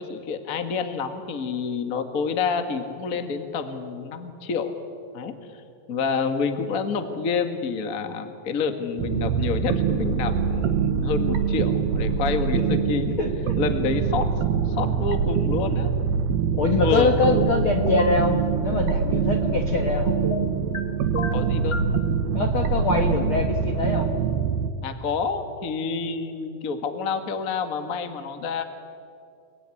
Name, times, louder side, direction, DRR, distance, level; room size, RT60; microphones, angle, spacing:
voice 1, 0.0-4.7 5.1-5.6 5.9-13.2 13.6-14.3 14.7-15.9 16.8-17.5 21.3-21.8 24.8-28.7, left 5 dB, 35° left, 7 dB, 1.5 m, -28 dB
sound 1, 9.0-24.7, right 6 dB, 85° right, 3.2 m, -24 dB
voice 2, 13.2-13.6 16.6-20.1 22.3-24.1, left 4 dB, 50° left, 3 dB, 1.6 m, -24 dB
sound 2, 17.8-18.2 20.2-20.8 21.1-21.9, left 3 dB, 80° left, 0.6 m, -30 dB
30.0 x 20.0 x 9.9 m, 2.5 s
omnidirectional pair, 4.2 m